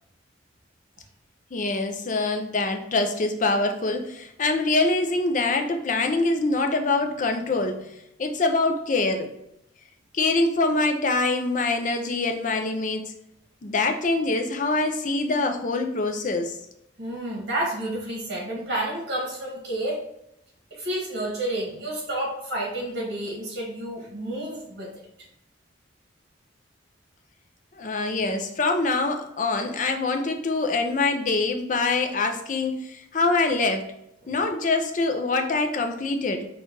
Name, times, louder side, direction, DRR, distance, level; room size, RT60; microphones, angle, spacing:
voice 1, 1.5-7.9 8.2-9.3 10.1-13.1 13.6-16.6 27.7-33.9 34.3-36.5, left 3 dB, 40° left, 5 dB, 0.5 m, -24 dB
voice 2, 17.0-20.0 20.7-24.9 34.2-34.3, right 1 dB, 55° right, -3 dB, 1.7 m, -30 dB
4.4 x 2.4 x 4.6 m, 0.80 s
head